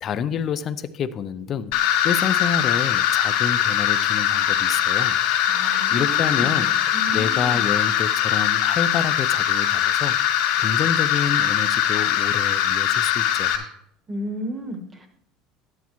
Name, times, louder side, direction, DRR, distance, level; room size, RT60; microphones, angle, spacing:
voice 1, 0.0-1.7 2.0-5.2 5.9-6.7 7.1-10.2 10.6-13.6, left 7 dB, 30° left, 13 dB, 0.4 m, -28 dB
sound 1, 1.7-13.6, left 10 dB, 75° left, 2.2 m, -21 dB
voice 2, 5.5-6.6 6.9-7.8 14.1-15.1, equal, 15° right, 5 dB, 1.2 m, -33 dB
12.5 x 9.4 x 3.0 m, 0.74 s
cardioid pair, 165°, 0 cm